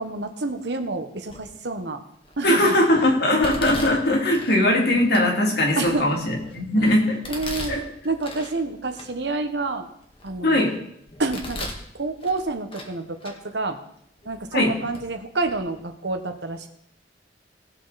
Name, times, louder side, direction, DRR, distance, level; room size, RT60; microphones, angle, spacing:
voice 1, 0.0-2.0 2.4-2.8 5.8-6.1 6.7-7.0 7.3-7.8 8.0-9.9 10.2-10.6 11.2-13.8 14.2-16.7, right 3 dB, 70° right, 7 dB, 1.2 m, -28 dB
Domestic sounds home sounds, 1.3-1.7 2.2-2.7 3.4-4.6 5.1-5.2 5.8-6.6 7.2-8.6 9.0-9.1 9.6-10.6 11.1-11.9 12.2-12.9 13.2-13.4 14.2-14.3 14.9-15.0 15.4-15.6, left 1 dB, 30° left, 1.8 m, -37 dB
voice 2, 2.4-7.2 7.7-7.8 10.4-10.7 14.5-14.7, left 1 dB, 65° left, 0 dB, 2.8 m, -20 dB
18.0 x 6.7 x 4.1 m, 0.72 s
head